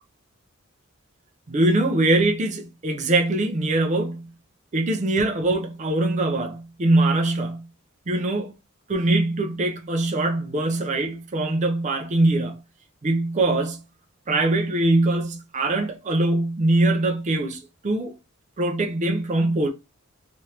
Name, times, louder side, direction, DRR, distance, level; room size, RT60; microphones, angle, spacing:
voice 1, 1.5-4.3 4.7-7.7 8.1-8.5 8.9-12.6 13.0-13.8 14.3-18.1 18.6-19.7, right 2 dB, 35° right, 0.5 m, -22 dB
3.1 x 2.5 x 2.9 m
head